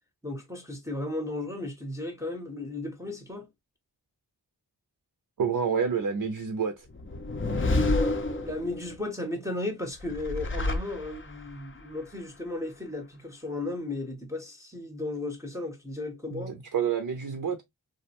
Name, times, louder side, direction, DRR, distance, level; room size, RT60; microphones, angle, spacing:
voice 1, 0.2-3.5 8.4-16.5, left 2 dB, 5° right, 0.7 m, -35 dB
voice 2, 5.4-6.9 16.3-17.6, right 6 dB, 55° right, 0.6 m, -28 dB
sound 1, 6.9-9.0 10.0-11.5, left 2 dB, 30° left, 0.5 m, -28 dB
2.4 x 2.1 x 2.8 m
wide cardioid pair, 45°, 40 cm